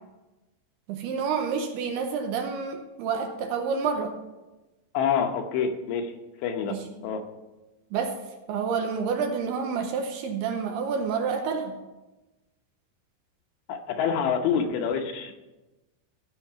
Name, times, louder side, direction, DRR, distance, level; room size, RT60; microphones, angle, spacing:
voice 1, 0.9-4.1 6.7-6.8 7.9-8.2 8.5-11.7, right 6 dB, 80° right, 4 dB, 2.6 m, -28 dB
voice 2, 4.9-6.1 6.4-6.8 7.0-7.2 13.7-15.3, left 7 dB, 80° left, 5 dB, 3.1 m, -26 dB
15.5 x 5.7 x 5.7 m, 1.1 s
omnidirectional pair, 5.2 m